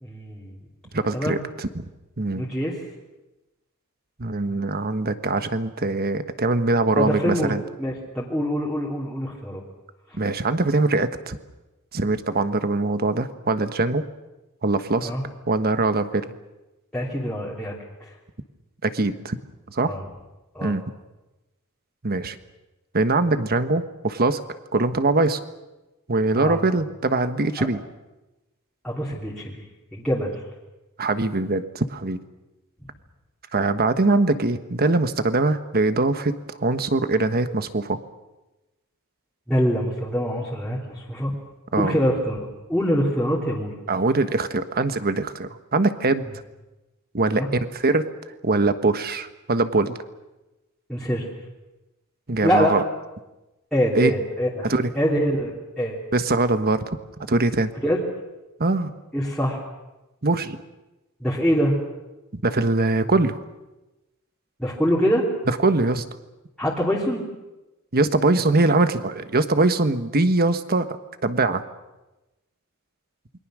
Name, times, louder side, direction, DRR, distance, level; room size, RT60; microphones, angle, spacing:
voice 1, 0.0-0.5 1.1-1.4 2.3-2.8 6.9-9.6 15.0-15.2 16.9-17.7 18.0-18.1 19.8-20.1 20.5-20.8 26.3-26.6 27.6-27.7 28.8-29.6 29.9-30.4 39.5-41.3 41.8-43.7 47.3-47.5 50.9-51.3 52.4-52.7 53.7-54.7 54.9-56.0 57.8-58.0 59.1-59.6 61.2-61.8 64.6-65.3 66.6-67.2, equal, 5° left, -7 dB, 3.0 m, -24 dB
voice 2, 0.9-1.9 2.2-2.5 4.2-7.6 10.1-11.4 11.9-14.0 14.6-15.1 15.5-16.2 18.8-19.4 19.7-19.9 20.6-20.8 22.0-22.4 22.9-24.4 24.7-25.4 26.1-27.8 31.0-32.2 33.5-38.0 41.7-42.0 43.9-46.3 47.1-48.1 48.4-50.0 52.3-52.8 53.9-54.1 54.6-54.9 56.1-56.8 57.3-57.7 58.6-58.9 60.2-60.6 62.3-63.4 65.5-66.0 67.9-71.0 71.2-71.6, right 2 dB, 45° right, 10 dB, 1.3 m, -22 dB
28.0 x 22.5 x 6.3 m, 1.0 s
head